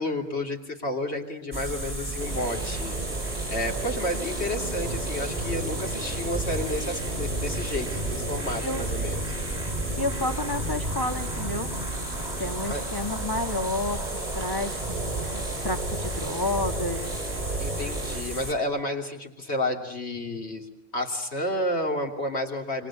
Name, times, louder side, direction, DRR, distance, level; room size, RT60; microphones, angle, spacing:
voice 1, 0.0-3.0 3.5-9.2 12.7-12.8 17.6-20.7 20.9-22.9, left 1 dB, 90° left, 2 dB, 3.3 m, -31 dB
sound 1, 1.5-18.5, right 2 dB, 10° right, 3.0 m, -34 dB
sound 2, 2.2-18.2, right 1 dB, 45° right, 6.7 m, -34 dB
voice 2, 10.0-11.7 12.4-17.2, left 2 dB, 20° left, 4 dB, 2.0 m, -31 dB
27.5 x 24.5 x 8.7 m, 0.85 s
omnidirectional pair, 1.1 m